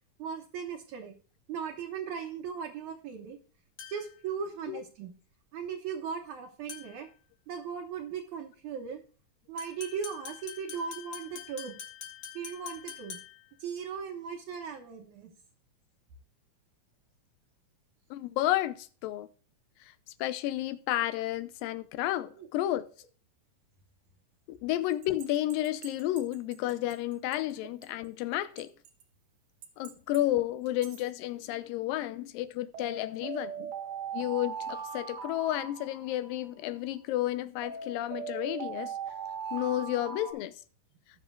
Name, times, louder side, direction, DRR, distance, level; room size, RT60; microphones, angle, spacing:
voice 1, 0.2-1.2 1.5-3.4 3.9-5.1 5.5-7.1 7.5-9.0 9.5-11.8 12.3-13.2 13.6-15.3 22.4-22.5 33.6-33.7 40.3-40.4, right 6 dB, 65° right, 2.4 m, -38 dB
sound 1, 3.8-4.2 6.7-7.1 9.6-13.5, left 8 dB, 70° left, 3.4 m, -45 dB
voice 2, 18.1-19.3 19.8-19.9 20.2-22.9 24.5-28.7 29.8-33.7 34.1-39.0 39.5-40.6, left 14 dB, 85° left, 2.4 m, -31 dB
sound 2, 25.0-26.9 27.3-27.4 27.8-27.9 28.6-29.0 29.6-30.2 30.7-31.0 32.7-36.5 37.6-40.3, right 6 dB, 85° right, 3.2 m, -39 dB
18.0 x 7.0 x 2.3 m
omnidirectional pair, 3.9 m